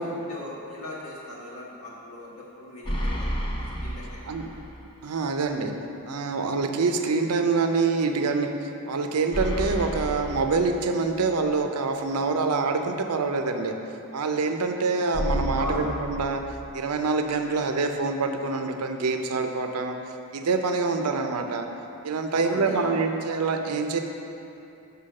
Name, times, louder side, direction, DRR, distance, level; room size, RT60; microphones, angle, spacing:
voice 1, 0.0-4.6 15.6-15.9 22.3-23.0, left 1 dB, 75° left, -5 dB, 1.6 m, -38 dB
sound 1, 2.8-4.9 5.2-5.3 9.3-11.3 15.1-17.1, equal, 25° left, 0.7 m, -31 dB
voice 2, 5.0-5.7 6.0-13.7 14.1-16.4 16.7-19.9 20.3-21.7 22.0-24.0, right 4 dB, 90° right, 5 dB, 0.6 m, -26 dB
5.7 x 5.6 x 6.5 m, 2.8 s
head